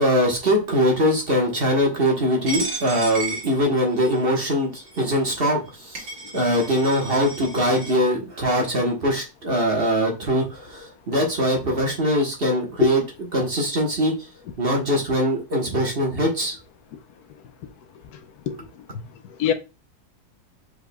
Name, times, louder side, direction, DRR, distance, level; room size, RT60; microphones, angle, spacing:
voice 1, 0.0-13.0 13.3-14.3 14.6-16.6, equal, 40° right, 1.3 m, -22 dB
Coin (dropping), 2.5-4.2 4.9-5.0 5.7-5.8 5.9-7.9, right 3 dB, 85° right, 2.5 m, -33 dB
voice 2, 18.5-19.5, left 9 dB, 80° left, 1.2 m, -28 dB
4.9 x 4.8 x 2.2 m
omnidirectional pair, 1.7 m